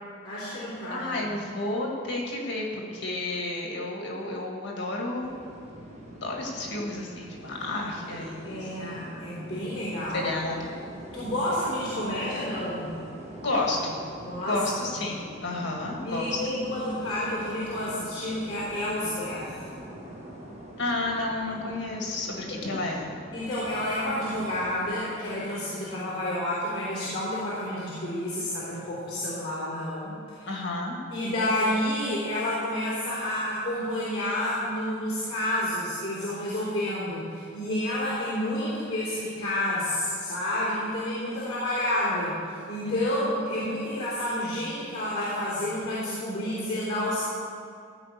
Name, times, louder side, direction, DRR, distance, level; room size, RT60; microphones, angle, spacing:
voice 1, 0.2-1.3 8.4-10.3 11.1-12.9 14.2-14.9 16.0-19.6 23.3-30.5 31.1-47.3, left 1 dB, 30° left, -8 dB, 3.4 m, -30 dB
voice 2, 0.9-5.3 6.2-9.1 10.1-10.8 13.4-14.0 14.5-16.4 20.8-23.1 30.5-31.0 42.8-43.1, left 2 dB, 55° left, -1 dB, 1.9 m, -31 dB
sound 1, 5.2-25.0, right 1 dB, 30° right, 1.5 m, -44 dB
15.0 x 5.1 x 8.3 m, 2.3 s
head